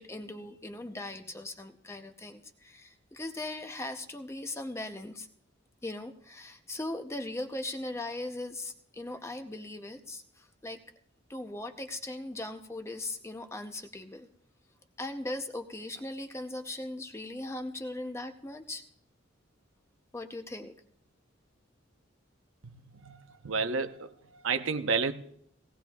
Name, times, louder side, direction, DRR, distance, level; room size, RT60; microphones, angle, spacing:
voice 1, 0.0-5.3 5.8-10.8 11.3-14.3 15.0-18.8 20.1-20.7, left 2 dB, 15° left, 6 dB, 0.7 m, -39 dB
voice 2, 23.4-24.1 24.3-25.1, right 4 dB, 85° right, 8 dB, 0.9 m, -29 dB
18.5 x 17.5 x 2.3 m, 0.70 s
head